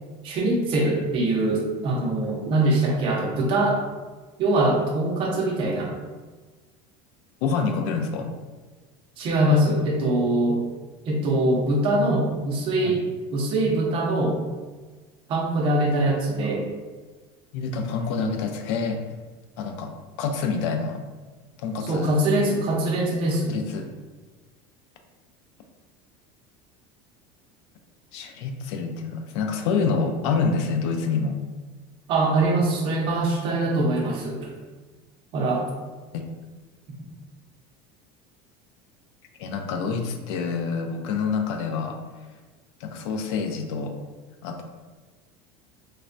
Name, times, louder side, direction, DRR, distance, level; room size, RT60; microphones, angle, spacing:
voice 1, 0.2-3.8 4.4-5.9 9.2-10.6 11.1-13.0 13.3-14.4 15.3-16.7 21.9-23.5 32.1-34.5 35.3-35.7, right 1 dB, 35° right, -1 dB, 0.5 m, -23 dB
voice 2, 7.4-8.3 12.8-13.0 17.5-19.0 19.6-19.9 20.2-21.0 21.6-22.1 23.5-23.9 28.1-31.4 36.1-36.2 39.4-42.0 42.8-44.0 44.4-44.6, left 5 dB, 80° left, 4 dB, 0.4 m, -27 dB
3.2 x 2.1 x 2.5 m, 1.3 s
cardioid pair, 160°, 14 cm